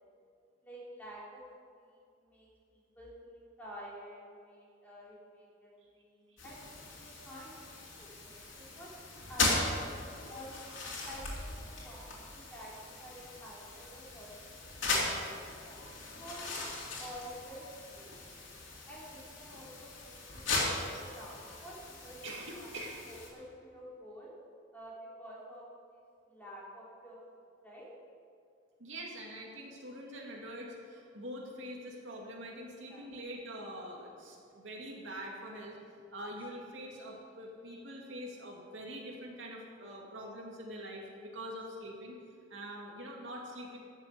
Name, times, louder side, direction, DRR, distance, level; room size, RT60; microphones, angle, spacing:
voice 1, 0.6-1.4 1.8-6.6 7.0-8.9 9.3-9.8 10.3-16.6 17.0-18.2 18.9-22.2 22.5-22.8 23.1-24.3 24.7-27.2 27.6-27.9 32.9-33.1, equal, 10° left, -6 dB, 3.5 m, -50 dB
sound 1, 6.4-23.3, left 3 dB, 70° left, 3.2 m, -38 dB
voice 2, 22.2-23.0 28.8-35.8 36.1-42.2 42.5-43.8, equal, 80° right, -1 dB, 2.4 m, -44 dB
13.5 x 7.2 x 8.3 m, 2.3 s
head